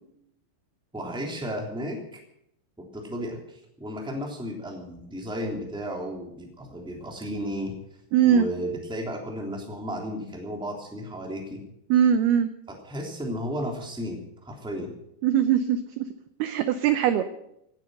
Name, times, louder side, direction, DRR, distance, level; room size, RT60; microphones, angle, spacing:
voice 1, 0.9-2.2 2.9-7.7 8.3-11.6 12.7-14.9, equal, ahead, 0 dB, 2.1 m, -34 dB
voice 2, 8.1-8.5 11.9-12.5 15.2-16.0 16.4-17.2, right 9 dB, 80° right, 10 dB, 2.2 m, -21 dB
17.5 x 9.6 x 7.8 m, 0.79 s
omnidirectional pair, 5.4 m